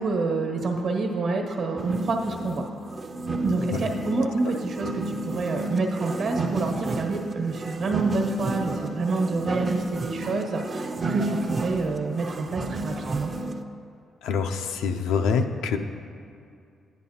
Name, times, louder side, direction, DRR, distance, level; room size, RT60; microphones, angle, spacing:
voice 1, 0.0-2.6 3.4-13.3, right 3 dB, 70° right, 2 dB, 1.3 m, -27 dB
sound 1, 1.8-13.6, right 2 dB, 40° right, 0.5 m, -31 dB
voice 2, 14.2-15.8, left 6 dB, 90° left, 6 dB, 0.5 m, -25 dB
10.5 x 9.2 x 2.8 m, 2.4 s
cardioid pair, 75°, 0 cm